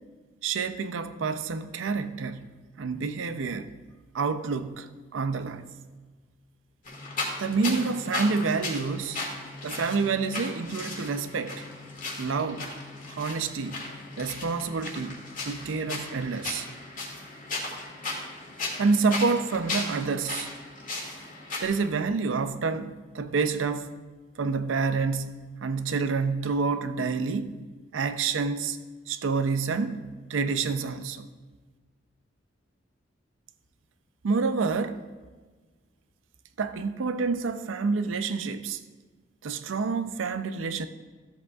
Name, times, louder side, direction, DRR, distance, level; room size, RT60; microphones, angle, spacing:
voice 1, 0.4-3.7 4.1-5.7 7.4-9.2 9.6-11.6 12.2-12.7 13.1-13.9 14.2-16.7 18.8-20.5 21.6-23.9 24.4-27.5 27.9-28.8 29.1-30.0 30.3-31.3 34.2-35.0 36.6-38.8 39.4-40.9, right 4 dB, 90° right, 0.5 m, -28 dB
sound 1, 6.8-21.6, left 2 dB, 45° left, 1.8 m, -36 dB
13.5 x 7.8 x 2.4 m
head